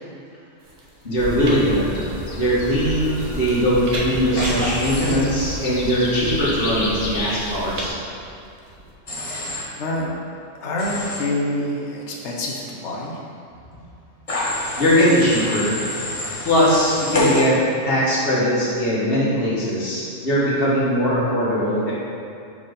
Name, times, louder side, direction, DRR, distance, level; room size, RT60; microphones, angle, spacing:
sound 1, 0.6-8.9, right 1 dB, 70° right, 1.2 m, -35 dB
voice 1, 1.0-2.0 2.3-8.0 14.8-15.8 16.4-17.6 17.9-21.9, equal, 50° left, -8 dB, 1.7 m, -20 dB
sound 2, 1.2-7.9, left 1 dB, 85° left, 1.3 m, -30 dB
Human voice / Train, 4.4-5.2 9.1-9.6 10.8-11.2 14.3-17.4, left 2 dB, 30° left, 0.9 m, -28 dB
voice 2, 9.8-10.1 10.6-13.2, left 1 dB, 65° left, -3 dB, 1.1 m, -26 dB
4.8 x 4.2 x 5.2 m, 2.5 s
omnidirectional pair, 1.3 m